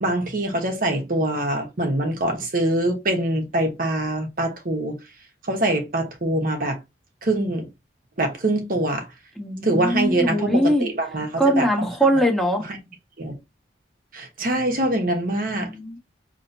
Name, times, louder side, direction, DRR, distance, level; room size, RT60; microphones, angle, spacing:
voice 1, 0.0-5.0 5.5-6.8 7.2-7.7 8.2-9.1 9.6-11.9 13.2-13.3 14.1-15.7, right 1 dB, 50° right, 1.1 m, -24 dB
voice 2, 9.4-10.9 11.4-12.7 15.4-16.0, equal, ahead, 1.1 m, -21 dB
5.5 x 3.0 x 2.6 m
head